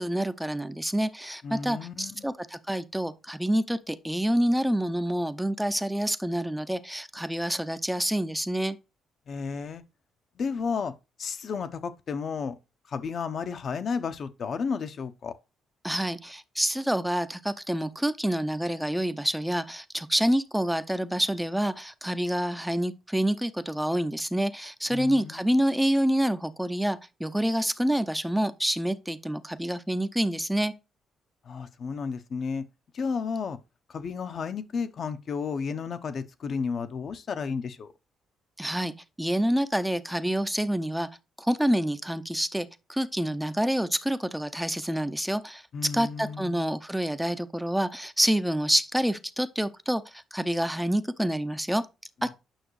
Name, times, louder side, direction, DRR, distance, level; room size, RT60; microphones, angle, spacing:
voice 1, 0.0-8.8 15.8-30.7 38.6-41.1 41.4-45.6 45.9-50.0 50.3-51.8 52.2-52.3, equal, 5° right, 0.6 m, -27 dB
voice 2, 1.4-2.3 9.3-9.8 10.4-10.9 11.2-12.6 12.9-15.3 24.9-25.6 31.4-32.6 32.9-33.6 33.9-37.9 45.7-46.8, left 5 dB, 55° left, 0.8 m, -32 dB
9.0 x 5.9 x 3.2 m
cardioid pair, 90°, 0 cm